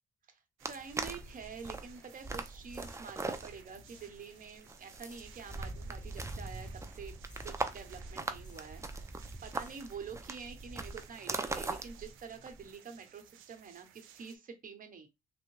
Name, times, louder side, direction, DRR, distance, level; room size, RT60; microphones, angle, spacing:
sound 1, 0.6-12.7, right 3 dB, 15° right, 0.4 m, -41 dB
voice 1, 0.6-15.1, right 5 dB, 45° right, 0.9 m, -47 dB
sound 2, 0.6-14.4, right 10 dB, 90° right, 0.5 m, -59 dB
sound 3, 1.0-10.2, left 5 dB, 40° left, 0.6 m, -62 dB
3.4 x 2.1 x 3.1 m
cardioid pair, 90°, 20 cm